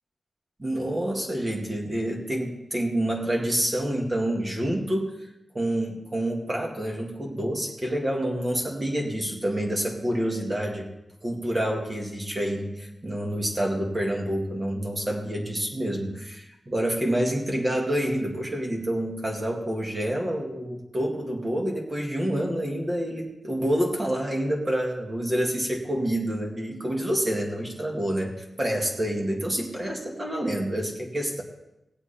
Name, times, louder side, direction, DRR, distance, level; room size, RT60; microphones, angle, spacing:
voice 1, 0.6-5.2 5.5-10.9 11.2-28.3 28.6-31.4, right 1 dB, 25° right, 0 dB, 2.1 m, -28 dB
18.5 x 7.9 x 4.4 m, 0.91 s
wide cardioid pair, 160°, 0 cm